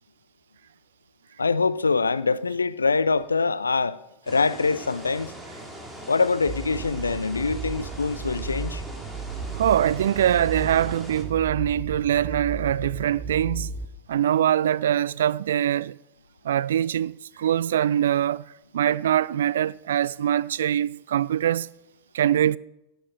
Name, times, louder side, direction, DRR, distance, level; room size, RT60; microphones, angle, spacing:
voice 1, 1.4-4.0 4.3-5.3 6.1-8.8, left 4 dB, 75° left, 0.6 m, -24 dB
sound 1, 4.3-11.2, right 1 dB, 5° right, 3.6 m, -41 dB
sound 2, 6.5-13.9, right 4 dB, 30° right, 1.5 m, -35 dB
voice 2, 9.5-13.7 14.1-16.0 16.4-18.5 18.7-21.7 22.1-22.6, right 10 dB, 60° right, 0.4 m, -23 dB
17.5 x 10.5 x 5.7 m
figure-of-eight pair, 90°, 0 cm